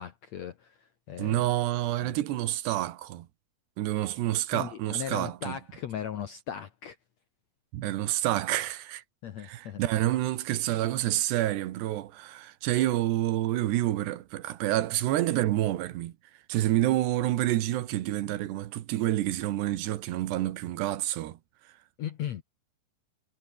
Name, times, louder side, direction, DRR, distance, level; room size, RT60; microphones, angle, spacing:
voice 1, 0.0-1.5 2.0-2.2 4.5-7.0 9.2-9.8 22.0-22.4, left 9 dB, 65° left, 1.7 m, -38 dB
voice 2, 1.2-3.3 3.8-5.6 7.7-9.0 9.4-16.1 16.5-21.4, right 14 dB, 90° right, 3.5 m, -28 dB
omnidirectional pair, 4.7 m